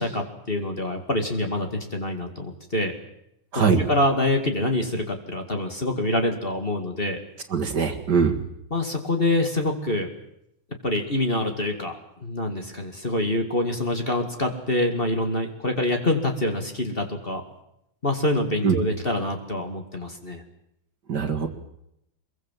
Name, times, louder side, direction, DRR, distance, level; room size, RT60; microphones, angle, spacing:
voice 1, 0.0-2.9 3.5-7.2 8.7-10.1 10.8-17.4 18.0-20.4, left 1 dB, 25° left, 4 dB, 2.4 m, -26 dB
voice 2, 7.5-8.4 18.6-18.8 21.1-21.5, right 6 dB, 50° right, 7 dB, 2.2 m, -21 dB
24.5 x 22.0 x 7.6 m, 0.80 s
omnidirectional pair, 2.4 m